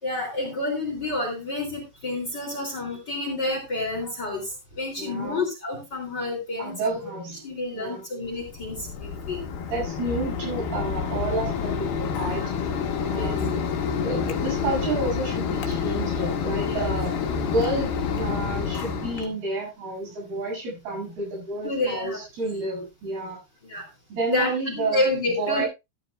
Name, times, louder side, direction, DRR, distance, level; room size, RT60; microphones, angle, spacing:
voice 1, 0.0-7.0 7.4-9.4 12.3-12.5 13.1-13.4 16.7-16.8 21.6-22.2 23.6-23.9 24.3-25.6, left 2 dB, 30° left, 2 dB, 3.4 m, -29 dB
voice 2, 5.0-5.4 6.6-7.4 7.7-8.1 9.7-12.7 13.0-13.6 14.0-17.2 17.4-23.4 24.1-25.7, right 2 dB, 70° right, -2 dB, 9.5 m, -30 dB
Mechanisms, 8.3-19.3, left 6 dB, 70° left, 3.5 m, -28 dB
14.5 x 12.5 x 2.4 m, 0.25 s
omnidirectional pair, 4.6 m